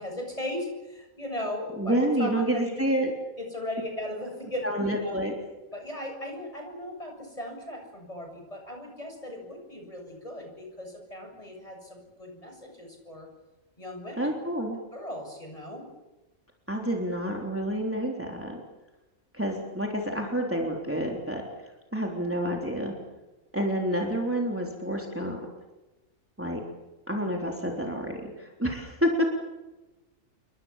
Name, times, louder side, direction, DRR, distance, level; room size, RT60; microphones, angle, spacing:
voice 1, 0.0-2.9 3.4-5.2 5.7-13.3 13.8-14.3 14.9-15.9, left 1 dB, 25° left, 3 dB, 7.6 m, -37 dB
voice 2, 1.8-3.1 4.6-5.3 14.2-14.8 16.7-18.6 19.3-22.9 23.5-25.4 26.4-26.6 27.1-29.2, equal, 10° right, 0 dB, 3.5 m, -29 dB
29.5 x 23.5 x 7.4 m, 1.1 s
omnidirectional pair, 1.4 m